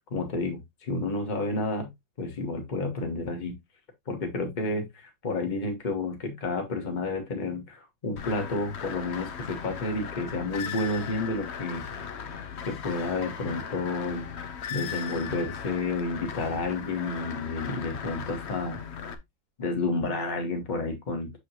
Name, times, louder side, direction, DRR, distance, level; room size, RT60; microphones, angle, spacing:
voice 1, 0.1-1.9 2.2-3.6 4.1-12.4 12.7-14.3 14.7-18.8 19.6-21.3, left 2 dB, 25° left, 1.3 m, -31 dB
sound 1, 8.2-19.1, left 7 dB, 65° left, 0.6 m, -38 dB
6.8 x 4.9 x 2.8 m
omnidirectional pair, 2.1 m